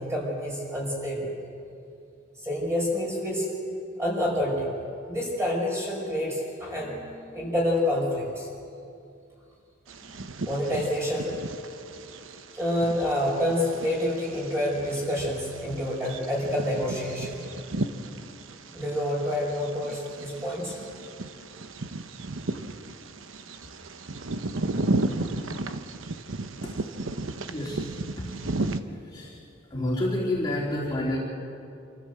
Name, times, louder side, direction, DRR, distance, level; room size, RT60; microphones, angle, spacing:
voice 1, 0.0-1.3 2.4-3.6 4.0-4.7 5.1-8.5 10.4-11.3 12.5-17.4 18.7-20.8, left 1 dB, 15° right, -3 dB, 5.6 m, -28 dB
Bird vocalization bird call bird song, 9.9-28.8, right 2 dB, 80° right, 1.0 m, -34 dB
voice 2, 27.5-27.9 28.2-28.3 28.8-29.4 29.7-31.2, left 1 dB, 20° left, -6 dB, 3.2 m, -29 dB
26.5 x 14.0 x 7.9 m, 2.5 s
head